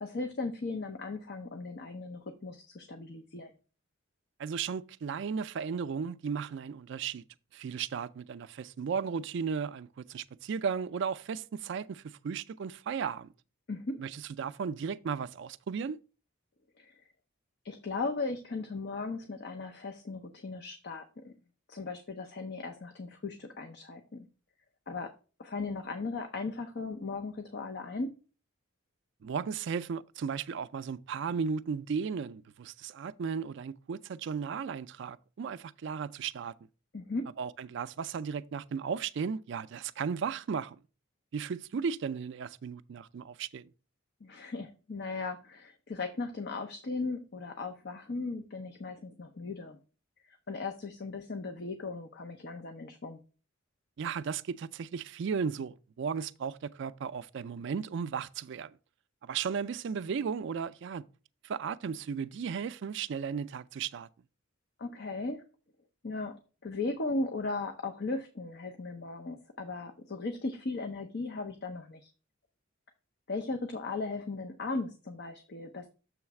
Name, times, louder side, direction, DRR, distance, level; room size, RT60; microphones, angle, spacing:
voice 1, 0.0-3.5 13.7-14.0 16.8-17.0 17.6-21.3 21.7-24.3 24.9-25.1 25.4-28.1 36.9-37.3 44.2-49.8 50.2-53.2 64.8-65.4 66.0-66.4 66.6-72.1 73.3-75.9, left 3 dB, 55° left, 0.6 m, -37 dB
voice 2, 4.4-7.2 7.5-13.3 14.0-16.0 29.2-36.5 37.4-40.8 41.3-43.7 54.0-58.8 59.2-61.0 61.4-64.1, right 6 dB, 60° right, 0.3 m, -35 dB
7.0 x 3.2 x 5.8 m
head